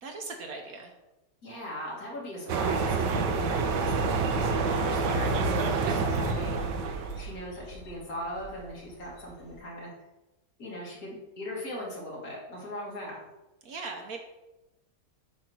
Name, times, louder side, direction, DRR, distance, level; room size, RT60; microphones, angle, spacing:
voice 1, 0.0-0.9 13.6-14.2, right 3 dB, 60° right, 3 dB, 1.2 m, -39 dB
voice 2, 1.4-6.6 7.2-9.9 10.6-13.2, left 1 dB, 55° left, -4 dB, 2.4 m, -39 dB
sound 1, 2.5-7.3, right 4 dB, 80° right, 1.3 m, -27 dB
sound 2, 4.3-9.6, left 1 dB, 85° left, 1.9 m, -42 dB
8.5 x 3.2 x 6.1 m, 1.0 s
omnidirectional pair, 1.9 m